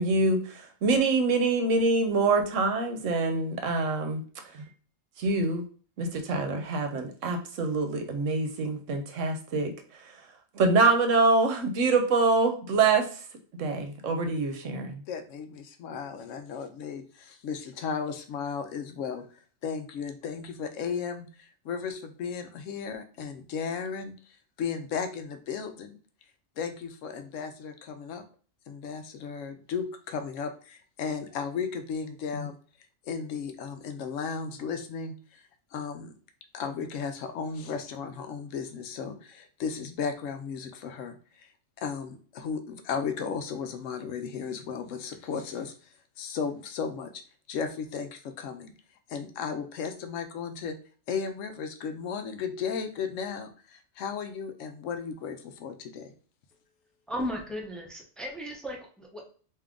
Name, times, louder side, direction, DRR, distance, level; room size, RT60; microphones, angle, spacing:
voice 1, 0.0-4.2 4.5-4.7 5.2-5.6 6.0-9.7 10.5-13.1 13.6-15.0, right 3 dB, 70° right, 6 dB, 1.0 m, -25 dB
voice 2, 15.1-24.2 24.6-26.0 26.6-28.2 28.7-32.6 33.0-36.1 36.5-41.5 41.8-47.2 47.5-48.7 49.1-50.8 51.1-56.1, left 6 dB, 75° left, 8 dB, 0.9 m, -35 dB
voice 3, 57.1-59.3, equal, ahead, 0 dB, 0.4 m, -36 dB
3.5 x 2.8 x 3.6 m, 0.41 s
omnidirectional pair, 1.4 m